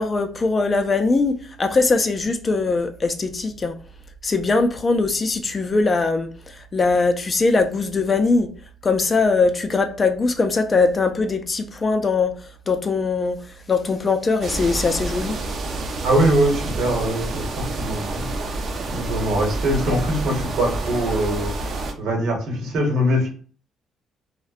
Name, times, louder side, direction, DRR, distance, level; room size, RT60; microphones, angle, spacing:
voice 1, 0.0-3.8 4.2-8.5 8.8-12.4 12.7-13.4 13.7-15.4, left 3 dB, 30° left, 0.4 m, -21 dB
sound 1, 14.4-21.9, right 2 dB, 55° right, 0.5 m, -28 dB
voice 2, 16.0-18.3 18.9-21.5 22.0-23.3, right 1 dB, 75° right, 1.0 m, -22 dB
2.6 x 2.1 x 2.3 m
cardioid pair, 95°, 0 cm